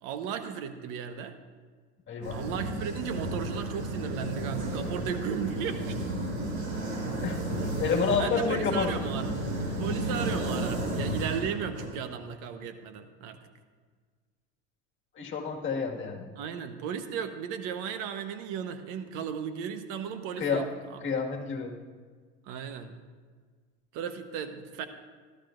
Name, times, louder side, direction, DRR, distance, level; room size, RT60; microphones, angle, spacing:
voice 1, 0.0-1.4 2.3-6.0 8.2-9.3 9.8-13.4 16.4-20.6 20.9-21.0 22.4-22.9 23.9-24.9, right 7 dB, 60° right, 8 dB, 1.1 m, -35 dB
voice 2, 2.1-2.4 7.2-7.4 7.8-8.9 15.2-16.3 20.4-20.6 21.0-21.7, left 5 dB, 35° left, 1 dB, 1.9 m, -29 dB
sound 1, 2.2-11.9, right 1 dB, 90° right, 4.3 m, -32 dB
18.0 x 13.0 x 2.6 m, 1.5 s
supercardioid pair, 100°, 35 cm